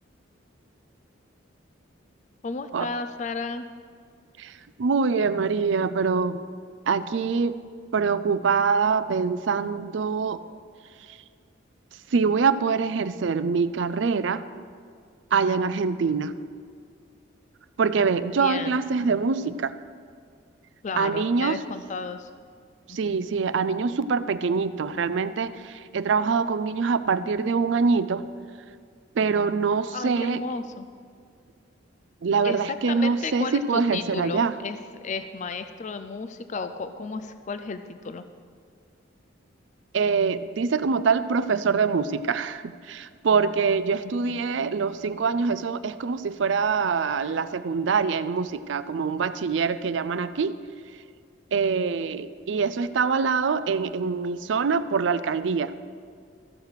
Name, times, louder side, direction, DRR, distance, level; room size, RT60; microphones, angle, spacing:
voice 1, 2.4-3.7 18.3-18.8 20.8-22.3 22.9-23.0 29.9-30.9 32.4-38.2 44.0-44.4, left 4 dB, 40° left, 10 dB, 0.4 m, -33 dB
voice 2, 4.4-6.4 6.9-7.6 7.9-10.4 11.1-11.2 12.1-14.4 15.3-16.4 17.8-19.8 21.0-21.6 22.9-28.2 29.2-30.4 32.2-34.5 39.9-50.6 51.5-55.7, right 5 dB, 70° right, 13 dB, 0.4 m, -24 dB
14.5 x 6.6 x 4.7 m, 2.1 s
head